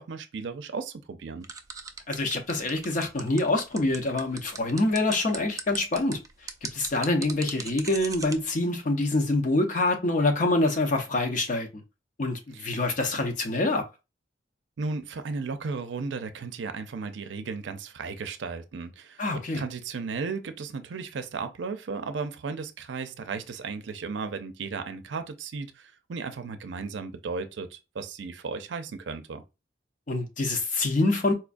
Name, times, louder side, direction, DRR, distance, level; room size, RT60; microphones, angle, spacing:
voice 1, 0.0-1.5 12.5-12.7 14.8-29.4, right 4 dB, 85° right, 0.5 m, -35 dB
sound 1, 1.4-8.4, right 5 dB, 20° right, 0.3 m, -38 dB
voice 2, 2.1-6.2 6.7-11.7 12.2-13.8 19.2-19.6 30.1-31.3, left 2 dB, 45° left, 0.7 m, -26 dB
4.3 x 2.3 x 2.5 m
head